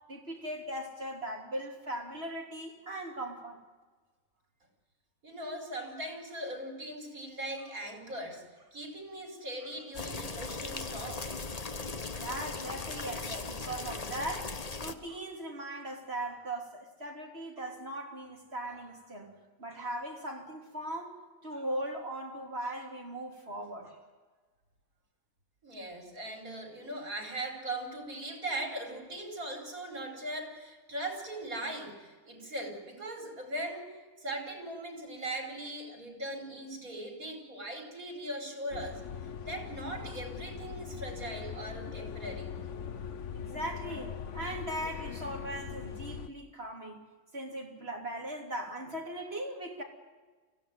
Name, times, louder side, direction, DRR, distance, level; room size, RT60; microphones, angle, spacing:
voice 1, 0.1-3.6 12.2-23.9 43.3-47.0 47.3-49.8, right 1 dB, 45° right, 3.6 m, -39 dB
voice 2, 5.2-11.3 25.6-39.0 39.4-42.5, right 1 dB, 85° right, 5.3 m, -39 dB
sound 1, 5.7-6.0 7.5-7.9 8.5-8.7 9.6-9.9 10.7-11.0 11.5-12.1 12.5-12.9 13.6-13.8 15.1-15.3 16.2-16.5 17.6-17.8 18.6-19.2 19.7-20.3 21.5-21.8 22.6-23.0 23.8-24.0, right 1 dB, 15° right, 4.0 m, -60 dB
sound 2, 9.9-14.9, left 4 dB, 30° left, 1.1 m, -38 dB
sound 3, 38.7-46.3, left 7 dB, 60° left, 1.2 m, -41 dB
25.0 x 16.0 x 9.3 m
omnidirectional pair, 1.5 m